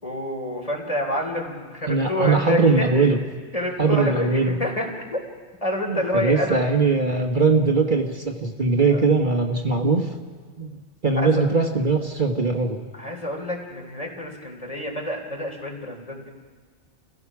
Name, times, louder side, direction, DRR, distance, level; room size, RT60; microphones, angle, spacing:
voice 1, 0.0-3.1 3.5-4.9 5.6-6.6 8.9-9.0 11.1-11.4 12.9-16.3, left 1 dB, 30° left, 0 dB, 3.3 m, -28 dB
voice 2, 1.9-3.2 3.8-4.5 5.9-10.1 10.6-12.8, right 4 dB, 45° right, 2 dB, 1.5 m, -21 dB
29.5 x 16.0 x 6.0 m, 1.5 s
omnidirectional pair, 1.1 m